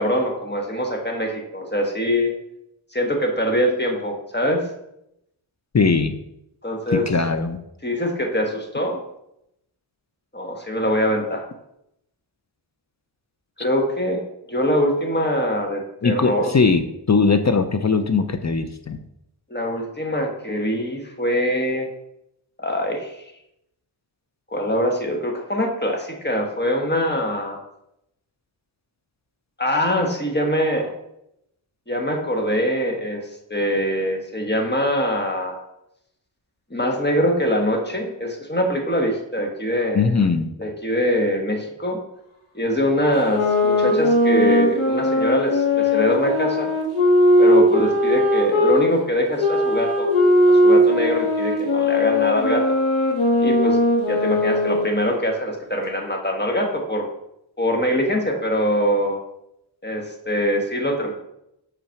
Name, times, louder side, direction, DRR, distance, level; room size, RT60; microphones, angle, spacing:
voice 1, 0.0-2.3 2.9-4.6 6.6-7.1 7.8-9.0 10.3-11.5 13.6-14.2 14.5-16.5 19.5-21.9 22.6-23.1 24.5-27.6 29.6-31.0 31.9-33.2 33.5-35.6 36.7-40.1 40.6-42.0 42.5-46.7 47.4-50.1 50.5-52.8 53.4-53.8 54.1-57.1 57.6-59.2 59.8-61.1, equal, 20° left, 1 dB, 1.3 m, -23 dB
voice 2, 5.7-6.1 6.9-7.6 16.0-19.0 39.9-40.5, left 4 dB, 35° left, 9 dB, 0.5 m, -20 dB
sound 1, 43.2-48.8 49.4-55.0, left 1 dB, 85° left, 1.5 m, -18 dB
5.6 x 3.9 x 5.7 m, 0.82 s
wide cardioid pair, 45°, 48 cm